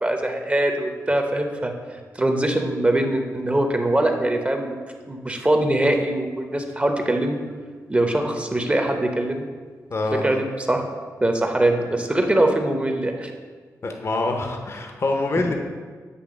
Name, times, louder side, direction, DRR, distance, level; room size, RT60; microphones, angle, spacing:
voice 1, 0.0-1.7 2.1-4.8 5.1-7.4 7.9-9.5 10.1-10.9 11.2-13.3, right 1 dB, 20° right, 4 dB, 0.8 m, -22 dB
voice 2, 9.9-10.3 13.8-15.6, left 2 dB, 45° left, 3 dB, 0.8 m, -25 dB
8.4 x 3.2 x 5.0 m, 1.5 s
cardioid pair, 65°, 6 cm